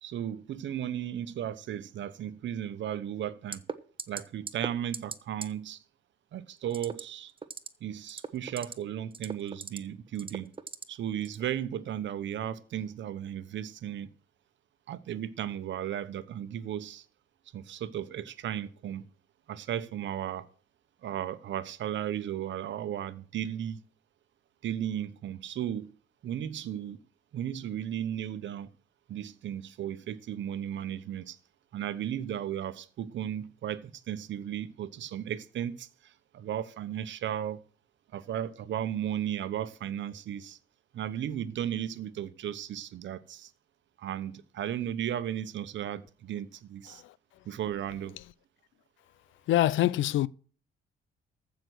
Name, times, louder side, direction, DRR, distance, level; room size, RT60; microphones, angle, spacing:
voice 1, 0.0-3.6 4.1-5.8 6.3-7.3 7.8-10.5 10.9-14.1 14.9-17.0 17.5-19.0 19.5-20.5 21.0-23.8 24.6-25.9 26.2-27.0 27.3-28.7 29.1-31.4 31.7-37.6 38.1-40.6 40.9-43.5 44.0-47.0 47.4-48.2, right 10 dB, 70° right, 1.1 m, -35 dB
sound 1, 3.5-3.7 4.0-4.2 4.5-4.7 4.9-5.2 5.4-5.5 6.7-7.0 7.4-7.7 8.0-8.7 9.1-9.8 10.2-10.8 11.2-11.4, right 4 dB, 25° right, 1.1 m, -37 dB
voice 2, 49.5-50.3, left 14 dB, 75° left, 0.6 m, -25 dB
14.5 x 6.2 x 6.3 m
cardioid pair, 90°, 20 cm